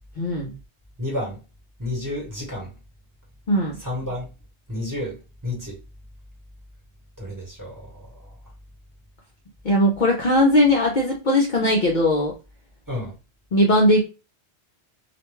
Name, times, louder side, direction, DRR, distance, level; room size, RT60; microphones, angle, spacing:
voice 1, 0.2-0.5 3.5-3.8 9.6-12.3 13.5-14.0, left 1 dB, 55° left, 0.6 m, -19 dB
voice 2, 1.0-1.4 1.8-2.7 3.8-4.3 4.7-5.8 7.2-8.3 12.9-13.1, left 1 dB, 20° right, 1.0 m, -31 dB
2.4 x 2.2 x 3.0 m
omnidirectional pair, 1.2 m